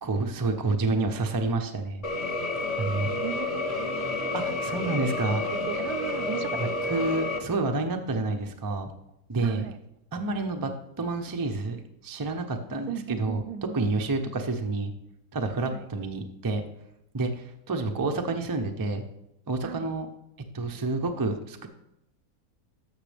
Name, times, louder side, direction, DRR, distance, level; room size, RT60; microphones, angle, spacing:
voice 1, 0.0-2.0 2.8-3.1 4.3-5.4 6.6-8.9 9.3-9.6 10.1-10.7 11.0-13.4 13.7-14.9 15.3-16.6 17.1-19.0 19.5-20.1 20.5-21.7, right 3 dB, 30° right, 5 dB, 0.3 m, -29 dB
sound 1, 2.0-7.4, left 2 dB, 30° left, 0.8 m, -30 dB
voice 2, 3.2-7.1 9.4-9.8 12.9-14.1 15.5-15.9 19.6-19.9, right 9 dB, 80° right, 12 dB, 1.0 m, -38 dB
14.5 x 6.2 x 3.4 m, 0.85 s
omnidirectional pair, 1.6 m